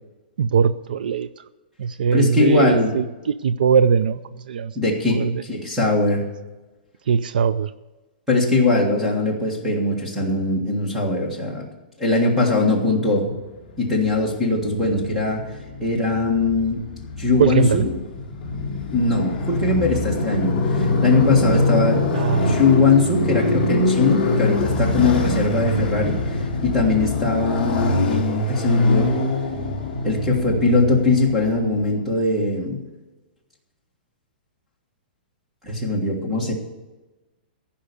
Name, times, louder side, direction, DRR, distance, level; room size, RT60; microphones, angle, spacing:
voice 1, 0.4-1.3 1.8-4.7 5.1-5.4 7.1-7.7 17.4-17.8 22.1-22.6, right 6 dB, 65° right, 15 dB, 0.4 m, -20 dB
voice 2, 2.1-3.0 4.7-6.2 8.3-11.6 12.0-13.3 13.8-15.4 15.8-16.8 17.2-17.9 18.9-22.1 22.3-29.1 30.0-32.8 35.6-36.5, left 3 dB, 5° right, -1 dB, 1.5 m, -21 dB
Motorcycle, 13.8-31.9, left 2 dB, 10° left, 1.8 m, -24 dB
15.5 x 5.7 x 8.3 m, 1.1 s
hypercardioid pair, 180°, 5 cm